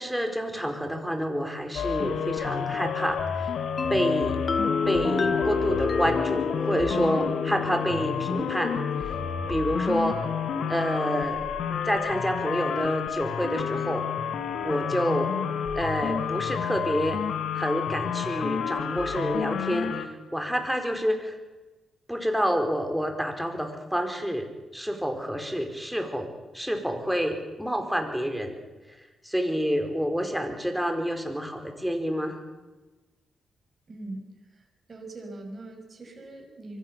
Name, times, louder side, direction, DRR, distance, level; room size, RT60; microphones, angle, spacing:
voice 1, 0.0-3.5 3.9-4.4 4.9-8.7 9.4-10.2 10.7-11.4 11.8-14.0 14.6-15.3 15.7-17.2 17.5-21.3 22.1-24.5 24.7-26.3 26.5-28.6 29.2-32.4, equal, ahead, 4 dB, 4.9 m, -28 dB
sound 1, 1.7-20.1, left 7 dB, 70° left, 1.7 m, -30 dB
sound 2, 3.8-11.4, left 5 dB, 45° left, 1.0 m, -31 dB
voice 2, 33.9-34.3 34.6-34.7 34.9-36.8, right 2 dB, 40° right, 1 dB, 5.8 m, -41 dB
24.0 x 17.0 x 6.9 m, 1.2 s
hypercardioid pair, 45°, 0 cm